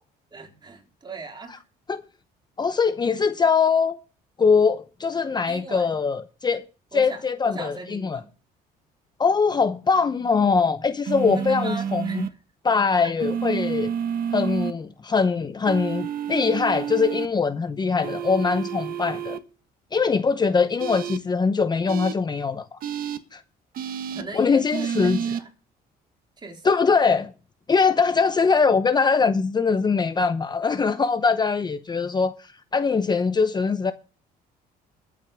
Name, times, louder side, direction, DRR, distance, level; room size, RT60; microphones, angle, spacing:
voice 1, 0.3-1.6 5.5-6.0 6.9-8.3 11.3-12.2 13.0-13.1 24.1-25.5 26.4-26.7, right 3 dB, 25° right, 4.1 m, -39 dB
voice 2, 2.6-4.0 4.4-6.6 6.9-8.2 9.2-12.3 12.6-13.9 14.3-19.4 19.9-22.8 23.3-23.4 24.3-25.2 26.6-27.3 27.7-33.9, left 5 dB, 25° left, 0.8 m, -22 dB
sound 1, 11.0-12.3 13.2-14.7 15.6-17.3 18.0-19.4 20.8-21.2 21.9-22.1 22.8-23.2 23.7-24.2 24.7-25.4, right 8 dB, 60° right, 1.5 m, -29 dB
22.0 x 8.6 x 3.6 m
cardioid pair, 110°, 17 cm